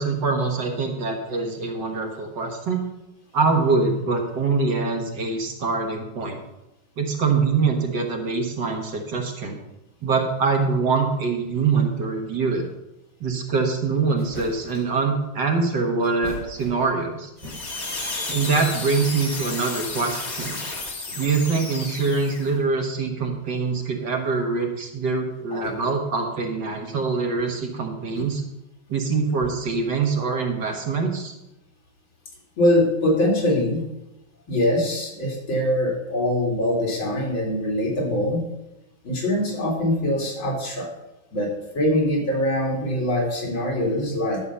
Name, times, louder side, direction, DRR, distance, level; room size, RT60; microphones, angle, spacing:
voice 1, 0.0-2.8 3.3-6.4 7.0-9.6 10.0-12.7 13.2-17.3 18.3-20.6 21.2-28.4 28.9-31.3, right 4 dB, 60° right, 2 dB, 2.1 m, -24 dB
sound 1, 14.2-15.0 16.0-17.1 17.4-18.1, left 1 dB, 20° right, 3.7 m, -40 dB
sound 2, 17.4-22.6, left 3 dB, 45° left, 2.1 m, -32 dB
voice 2, 32.6-33.8 34.5-38.4 39.0-40.9 41.3-41.5 41.7-44.4, left 1 dB, 75° left, -1 dB, 3.4 m, -23 dB
12.0 x 6.5 x 5.6 m, 0.94 s
omnidirectional pair, 2.2 m